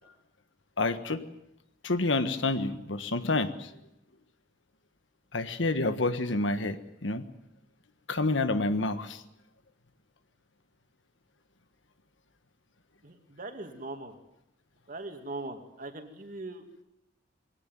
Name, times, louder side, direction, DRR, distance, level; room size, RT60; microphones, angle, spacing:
voice 1, 0.8-1.2 1.8-3.7 5.3-7.2 8.1-9.2, left 2 dB, 90° left, 10 dB, 1.5 m, -28 dB
voice 2, 13.0-14.2 14.9-16.7, right 2 dB, 45° right, 6 dB, 2.4 m, -40 dB
21.0 x 17.5 x 9.2 m, 0.85 s
head